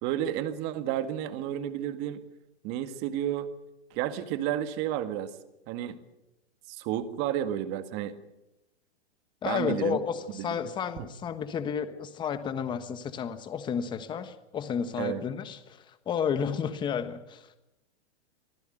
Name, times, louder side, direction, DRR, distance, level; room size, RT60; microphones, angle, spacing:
voice 1, 0.0-2.2 2.6-3.5 3.9-5.4 5.7-6.0 6.7-8.1 9.4-10.0 10.3-10.5 15.0-15.2, right 11 dB, 30° right, 10 dB, 1.8 m, -31 dB
voice 2, 9.4-17.5, left 7 dB, 15° left, 11 dB, 1.3 m, -32 dB
24.5 x 15.5 x 9.0 m, 0.92 s
hypercardioid pair, 155°, 34 cm